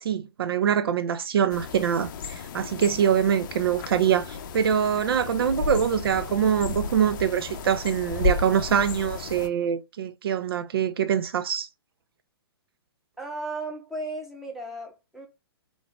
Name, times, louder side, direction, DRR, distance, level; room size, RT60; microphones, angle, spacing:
voice 1, 0.0-11.7, right 8 dB, 65° right, 0.5 m, -24 dB
sound 1, 1.5-9.5, left 5 dB, 50° left, 0.6 m, -33 dB
voice 2, 13.2-15.3, right 2 dB, ahead, 1.3 m, -35 dB
3.9 x 3.5 x 3.4 m
figure-of-eight pair, 120°, 13 cm